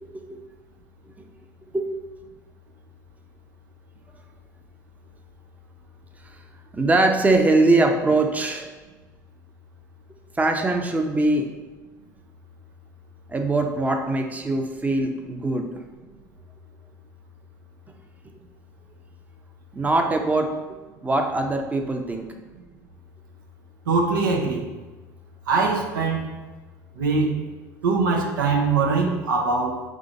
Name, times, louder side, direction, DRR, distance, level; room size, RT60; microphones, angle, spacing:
voice 1, 0.0-0.4 1.7-1.9 6.2-6.4 6.7-8.7 10.4-11.5 13.3-15.7 19.7-20.8 21.0-22.3, right 2 dB, 15° right, 3 dB, 0.6 m, -22 dB
voice 2, 23.9-24.6 25.5-26.3 26.9-27.4 27.8-29.8, right 4 dB, 85° right, 1 dB, 0.7 m, -22 dB
3.7 x 3.2 x 3.8 m, 1.2 s
hypercardioid pair, 65°, 10 cm